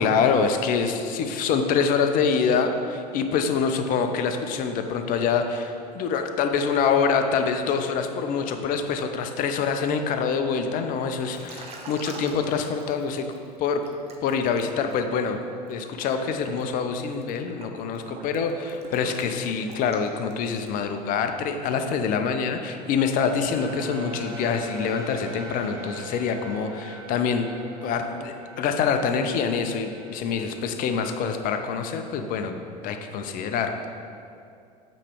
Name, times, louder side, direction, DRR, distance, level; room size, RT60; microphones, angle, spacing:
voice 1, 0.0-13.2 13.6-13.8 14.2-15.4 15.7-27.5 27.8-32.5 32.8-33.8, left 6 dB, 40° left, 7 dB, 0.6 m, -25 dB
Liquid, 11.4-13.4 13.8-20.8, right 3 dB, 30° right, 0.8 m, -44 dB
sound 1, 23.5-30.7, right 2 dB, 60° right, 0.9 m, -40 dB
8.5 x 3.2 x 4.7 m, 2.5 s
figure-of-eight pair, 75°, 21 cm